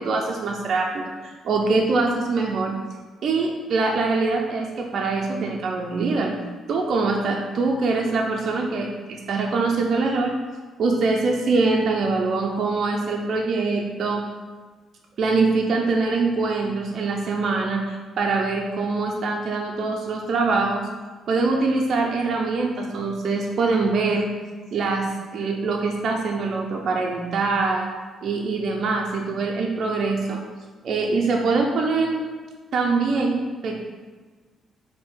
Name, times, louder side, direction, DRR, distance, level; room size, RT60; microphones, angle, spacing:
voice 1, 0.0-2.8 3.2-6.4 6.7-10.4 10.8-14.2 15.2-20.8 21.3-24.3 24.7-27.9 28.2-30.4 30.8-32.2 32.7-33.8, right 3 dB, 60° right, 0 dB, 0.4 m, -23 dB
4.2 x 2.7 x 3.5 m, 1.4 s
cardioid pair, 90°, 0 cm